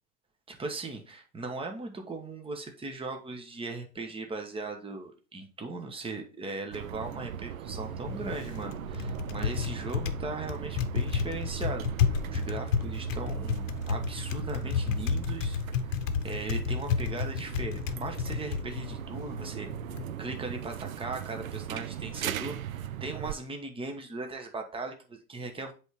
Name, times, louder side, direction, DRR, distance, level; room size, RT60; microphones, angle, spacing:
voice 1, 0.5-15.9 16.2-19.7 20.2-25.7, right 3 dB, 15° right, 4 dB, 1.3 m, -38 dB
sound 1, 6.7-23.3, right 9 dB, 75° right, 0.6 m, -38 dB
Typing, 7.7-20.1, left 8 dB, 65° left, 0.9 m, -32 dB
7.7 x 3.6 x 4.4 m, 0.34 s
figure-of-eight pair, 85°, 42 cm